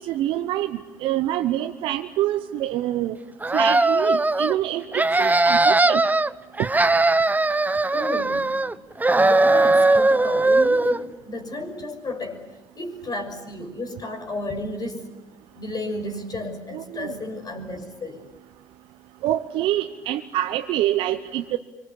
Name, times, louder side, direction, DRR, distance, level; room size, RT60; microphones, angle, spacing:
voice 1, 0.0-3.2 3.5-6.0 6.6-6.7 16.7-17.2 19.2-21.6, right 13 dB, 75° right, 7 dB, 0.9 m, -26 dB
sound 1, 3.4-4.6 4.9-6.3 6.6-8.7 9.0-11.0, right 2 dB, 20° right, 1.0 m, -19 dB
voice 2, 7.9-8.6 9.1-12.4 12.8-15.1 15.5-18.2, left 2 dB, 45° left, 5 dB, 6.0 m, -32 dB
26.5 x 25.0 x 8.4 m, 1.2 s
hypercardioid pair, 45°, 9 cm